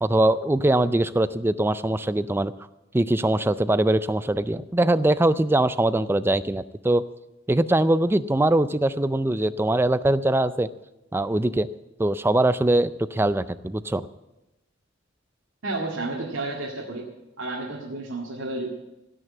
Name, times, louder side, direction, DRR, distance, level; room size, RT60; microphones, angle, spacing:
voice 1, 0.0-2.5 2.9-7.0 7.5-10.7 11.1-11.7 12.0-14.1, right 1 dB, 10° right, 14 dB, 0.4 m, -22 dB
voice 2, 15.6-17.1 17.4-18.7, right 2 dB, 80° right, -3 dB, 2.0 m, -31 dB
16.5 x 6.4 x 8.6 m, 0.97 s
head